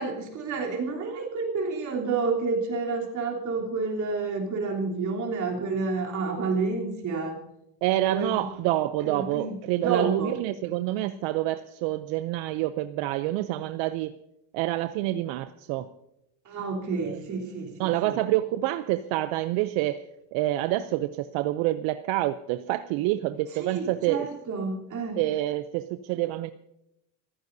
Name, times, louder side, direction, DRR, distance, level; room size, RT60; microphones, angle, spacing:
voice 1, 0.0-7.4 8.1-8.4 9.0-10.3 16.4-18.2 23.5-25.2, right 4 dB, 40° right, -1 dB, 3.4 m, -30 dB
voice 2, 7.8-14.1 14.5-15.9 17.0-17.2 17.8-20.0 20.3-24.3 25.2-26.5, right 15 dB, 75° right, 11 dB, 0.7 m, -27 dB
26.0 x 14.5 x 2.7 m, 0.85 s
cardioid pair, 160°, 47 cm